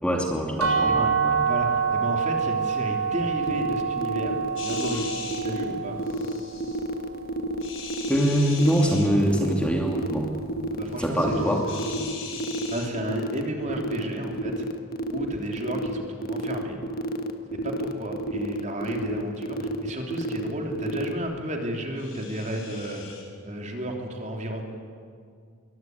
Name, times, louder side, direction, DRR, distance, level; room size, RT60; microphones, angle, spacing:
voice 1, 0.0-1.4 8.1-10.3 11.0-11.7, equal, 5° left, 0 dB, 2.6 m, -24 dB
sound 1, 0.6-6.4, right 6 dB, 80° right, 4.4 m, -26 dB
voice 2, 1.5-6.0 10.7-11.6 12.7-14.6 15.1-16.8 17.5-23.0 23.4-24.6, right 1 dB, 35° right, 2 dB, 3.3 m, -33 dB
sound 2, 3.4-21.1, right 2 dB, 40° left, 1.5 m, -31 dB
sound 3, 4.6-5.4 6.0-6.8 7.6-9.1 11.0-12.9 22.0-23.3, left 6 dB, 60° left, 5.6 m, -40 dB
26.5 x 23.0 x 9.5 m, 2.2 s
head